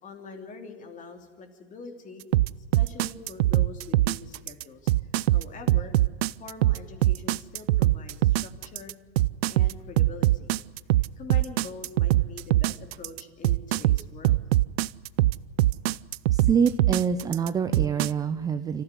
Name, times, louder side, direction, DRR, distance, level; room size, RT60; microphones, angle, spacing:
voice 1, 0.0-2.2 2.7-5.9 6.4-8.9 9.5-10.5 11.2-14.4, left 4 dB, 25° left, 6 dB, 2.9 m, -44 dB
sound 1, 2.3-18.1, right 16 dB, 70° right, 0.6 m, -22 dB
voice 2, 16.3-18.8, right 6 dB, 10° right, 10 dB, 0.6 m, -26 dB
25.5 x 15.0 x 9.7 m, 1.5 s
supercardioid pair, 145°, 32 cm